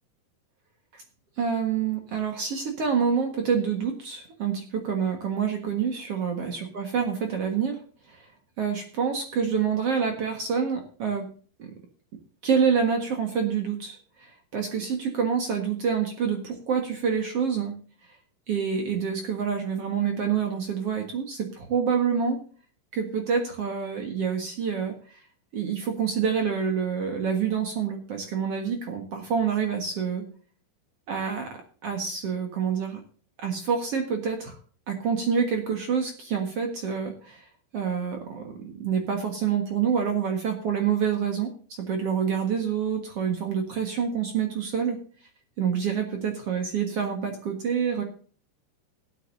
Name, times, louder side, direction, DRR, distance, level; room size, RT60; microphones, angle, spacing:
voice 1, 1.4-7.8 8.1-8.3 8.6-11.3 11.6-11.7 12.4-17.7 18.5-22.4 22.9-25.2 25.5-30.2 31.1-33.0 33.4-34.6 34.9-37.4 37.7-41.5 41.8-45.0 45.6-48.0, right 6 dB, 75° right, 4 dB, 1.3 m, -27 dB
17.0 x 12.0 x 2.7 m, 0.43 s
omnidirectional pair, 5.4 m